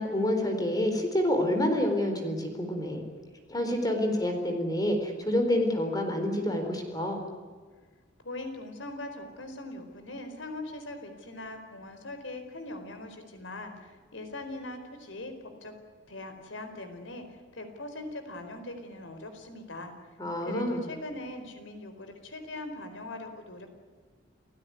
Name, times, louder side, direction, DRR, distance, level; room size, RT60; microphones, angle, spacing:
voice 1, 0.0-3.0 3.5-7.2 20.2-20.8, left 1 dB, 20° left, 5 dB, 4.3 m, -28 dB
voice 2, 8.2-15.7 16.1-19.9 20.4-23.7, left 2 dB, 85° left, 7 dB, 4.5 m, -41 dB
29.5 x 16.5 x 9.7 m, 1.5 s
head